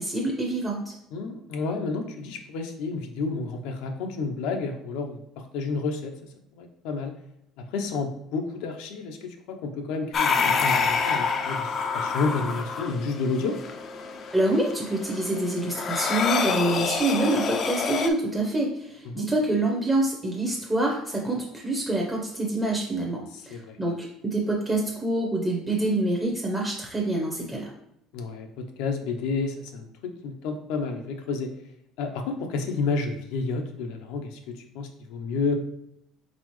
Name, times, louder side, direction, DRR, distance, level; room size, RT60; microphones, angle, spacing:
voice 1, 0.0-0.9 14.3-27.7, right 2 dB, 10° right, -1 dB, 0.7 m, -26 dB
voice 2, 1.1-6.1 6.5-7.1 7.6-13.6 19.1-19.6 23.3-23.8 28.1-29.9 30.2-31.5 32.0-35.5, left 4 dB, 85° left, 4 dB, 0.7 m, -30 dB
sound 1, 10.1-18.1, left 5 dB, 40° left, 0.4 m, -27 dB
4.1 x 3.9 x 3.1 m, 0.78 s
cardioid pair, 135°, 0 cm